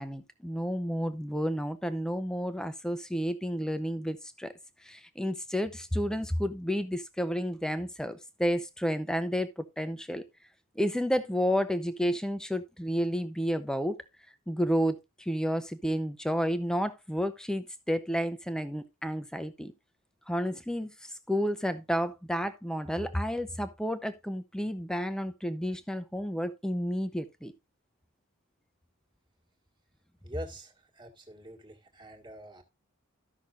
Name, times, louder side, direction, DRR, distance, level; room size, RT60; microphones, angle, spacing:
voice 1, 0.0-4.5 4.8-10.2 10.8-14.0 14.5-19.7 20.3-27.5, equal, 5° left, 0.6 m, -31 dB
voice 2, 30.2-32.6, right 1 dB, 20° right, 1.6 m, -44 dB
14.0 x 6.0 x 2.5 m
head